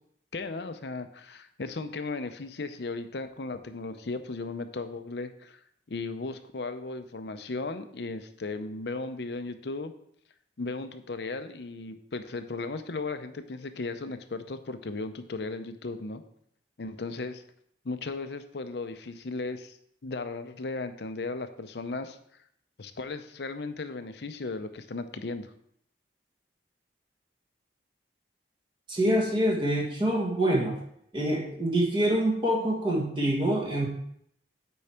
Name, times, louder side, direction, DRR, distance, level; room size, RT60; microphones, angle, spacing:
voice 1, 0.3-5.6 5.9-9.9 10.6-16.2 16.8-17.4 17.8-19.8 20.0-22.2 22.8-25.5, left 3 dB, 70° left, 9 dB, 0.6 m, -36 dB
voice 2, 28.9-30.8 31.1-33.9, right 1 dB, 25° right, -2 dB, 1.2 m, -26 dB
8.5 x 4.7 x 4.3 m, 0.71 s
head